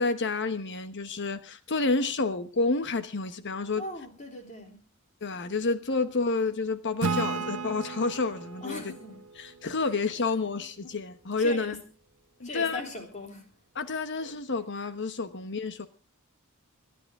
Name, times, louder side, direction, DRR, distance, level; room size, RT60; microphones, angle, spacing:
voice 1, 0.0-3.8 5.2-8.8 9.4-11.7 12.4-12.8 13.8-15.9, left 3 dB, 55° left, 1.1 m, -29 dB
voice 2, 3.8-4.8 8.6-9.2 10.3-10.4 10.8-11.0 11.4-11.8 12.4-13.5, left 1 dB, 35° left, 3.4 m, -39 dB
Acoustic guitar / Strum, 7.0-10.5, right 4 dB, 70° right, 1.0 m, -34 dB
26.0 x 11.0 x 3.6 m
head